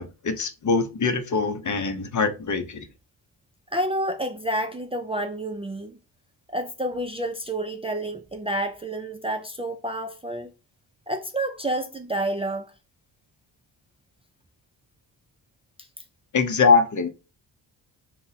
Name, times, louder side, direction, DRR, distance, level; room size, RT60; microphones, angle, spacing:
voice 1, 0.0-2.9 16.3-17.1, left 4 dB, 45° left, 0.7 m, -23 dB
voice 2, 3.7-6.0 6.5-10.5 11.1-12.7, right 1 dB, 15° right, 0.4 m, -29 dB
2.7 x 2.2 x 4.0 m
cardioid pair, 60°, 44 cm